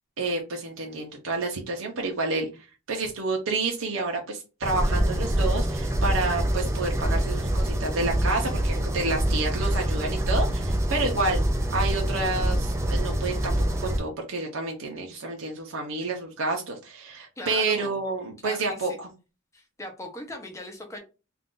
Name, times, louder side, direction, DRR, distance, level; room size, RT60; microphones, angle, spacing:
voice 1, 0.2-2.5 2.9-11.4 11.7-13.5 13.8-19.1, right 3 dB, 75° right, 0.7 m, -29 dB
sound 1, 4.6-14.0, right 1 dB, 15° right, 0.4 m, -25 dB
voice 2, 17.4-18.0 18.4-19.0 19.5-21.0, left 1 dB, 15° left, 0.7 m, -39 dB
2.5 x 2.4 x 3.7 m
head